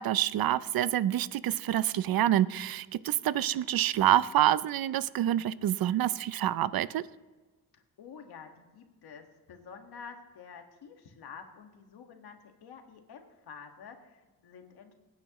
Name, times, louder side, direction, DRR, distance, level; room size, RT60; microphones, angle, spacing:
voice 1, 0.0-7.0, right 12 dB, 70° right, 17 dB, 0.5 m, -27 dB
voice 2, 7.7-14.9, left 6 dB, 85° left, 4 dB, 1.8 m, -49 dB
24.0 x 9.6 x 3.0 m, 1.3 s
wide cardioid pair, 135°, 38 cm